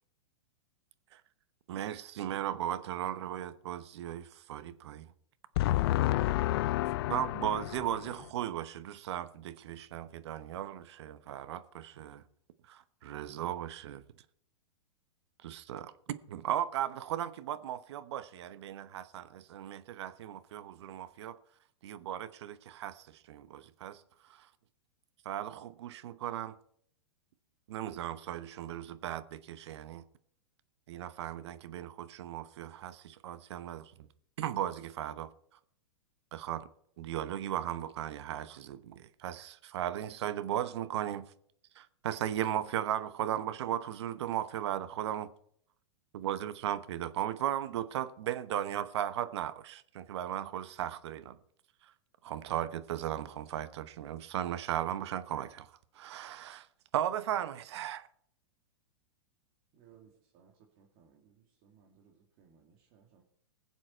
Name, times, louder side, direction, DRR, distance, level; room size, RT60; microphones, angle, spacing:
voice 1, 1.7-5.1 7.1-12.2 12.7-14.0 15.4-15.9 16.3-21.4 21.8-24.0 24.3-24.5 25.2-26.6 27.7-30.0 30.9-34.1 34.4-35.3 36.3-36.7 37.0-41.3 41.7-45.3 46.1-51.4 52.2-55.7 55.9-56.7 56.9-58.1, right 11 dB, 65° right, 0.9 m, -36 dB
voice 2, 5.6-7.9, left 15 dB, 60° left, 0.4 m, -29 dB
voice 3, 59.7-63.2, right 7 dB, 45° right, 2.4 m, -63 dB
20.5 x 7.5 x 4.4 m
hypercardioid pair, 120°, 15 cm